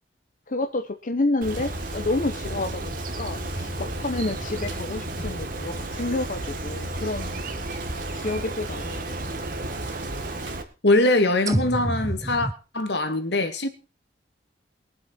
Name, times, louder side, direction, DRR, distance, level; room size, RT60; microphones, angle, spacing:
voice 1, 0.5-7.4 8.1-9.2, left 2 dB, 45° left, 1.0 m, -29 dB
Bird, 1.4-10.6, right 2 dB, 50° right, 1.8 m, -34 dB
sound 1, 1.5-10.6, equal, 85° right, 3.3 m, -36 dB
sound 2, 3.5-7.8 8.5-8.6 11.5-12.5, right 1 dB, 20° right, 0.7 m, -33 dB
voice 2, 10.8-12.5 12.7-13.7, left 2 dB, 70° left, 2.0 m, -22 dB
22.0 x 7.7 x 4.5 m
head